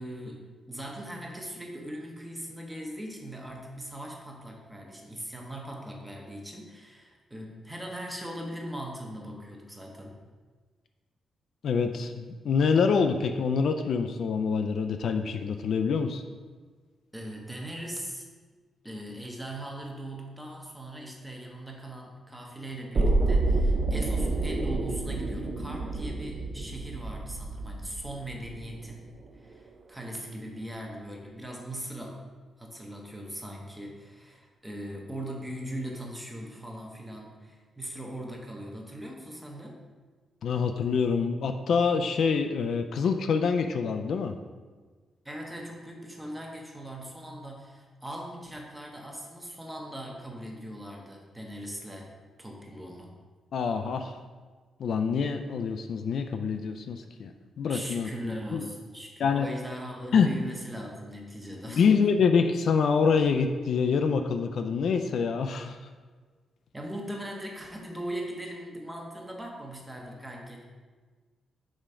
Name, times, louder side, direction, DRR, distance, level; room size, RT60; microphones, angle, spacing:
voice 1, 0.0-10.2 17.1-18.2 18.8-32.3 32.6-39.7 45.2-52.1 52.4-53.1 57.7-61.9 66.7-70.6, right 1 dB, 5° right, 0 dB, 0.8 m, -40 dB
voice 2, 11.6-16.2 40.4-44.3 53.5-54.2 54.8-57.3 57.6-58.6 59.2-59.5 60.1-60.3 61.7-65.8, left 5 dB, 60° left, 7 dB, 0.3 m, -26 dB
sound 1, 22.9-28.9 29.2-29.3, right 2 dB, 35° right, 0.4 m, -28 dB
5.0 x 3.6 x 5.5 m, 1.4 s
wide cardioid pair, 165°, 0 cm